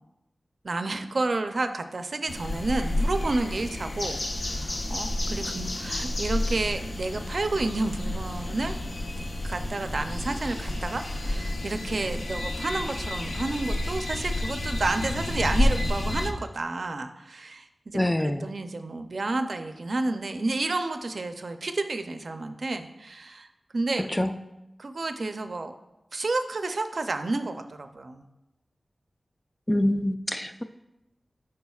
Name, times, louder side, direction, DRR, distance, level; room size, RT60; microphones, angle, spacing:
voice 1, 0.6-4.2 4.5-8.8 9.4-23.5 23.7-24.1 24.8-25.7 26.1-28.2, right 2 dB, 60° right, 8 dB, 0.5 m, -30 dB
sound 1, 2.3-16.3, left 1 dB, 60° left, 0.6 m, -30 dB
voice 2, 17.9-18.5 24.0-24.3 29.7-30.6, left 1 dB, 15° left, 8 dB, 0.3 m, -25 dB
11.5 x 4.8 x 2.3 m, 0.94 s
wide cardioid pair, 95°, 0 cm